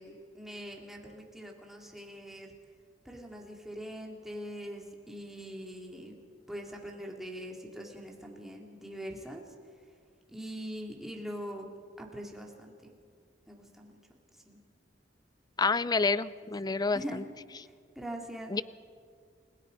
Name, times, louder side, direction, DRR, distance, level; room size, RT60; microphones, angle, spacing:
voice 1, 0.0-2.5 3.0-6.1 6.5-9.4 10.3-11.7 12.0-12.9 13.5-13.9 14.5-14.6 16.9-17.3 18.0-18.5, equal, ahead, -1 dB, 2.6 m, -42 dB
voice 2, 15.6-17.2 18.5-18.6, left 4 dB, 20° left, 17 dB, 0.4 m, -28 dB
29.5 x 17.0 x 5.2 m, 2.1 s
head